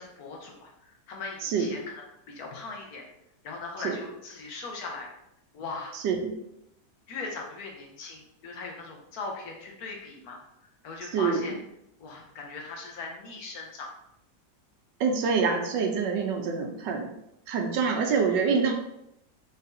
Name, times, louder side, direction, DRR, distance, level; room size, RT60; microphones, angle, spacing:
voice 1, 0.0-1.8 2.3-3.0 3.4-5.1 5.5-6.0 7.1-10.4 10.8-11.6 12.0-13.9, left 3 dB, 65° left, 0 dB, 1.2 m, -39 dB
voice 2, 5.9-6.3 11.1-11.4 15.0-17.1 17.5-18.7, right 5 dB, 85° right, 3 dB, 1.4 m, -26 dB
4.0 x 4.0 x 2.6 m, 0.80 s
omnidirectional pair, 1.9 m